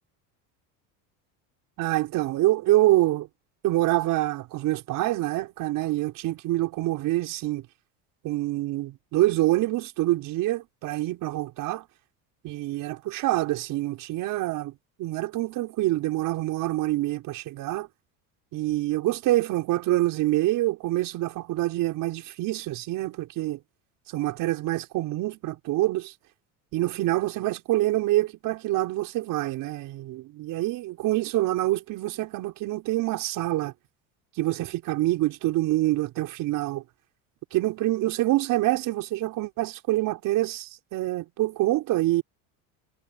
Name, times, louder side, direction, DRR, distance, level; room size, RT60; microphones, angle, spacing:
voice 1, 1.8-3.3 3.6-7.7 8.2-11.8 12.4-14.7 15.0-17.9 18.5-23.6 24.1-26.1 26.7-33.7 34.4-36.8 37.5-42.2, right 17 dB, 55° right, 5.2 m, -26 dB
cardioid pair, 135°, 39 cm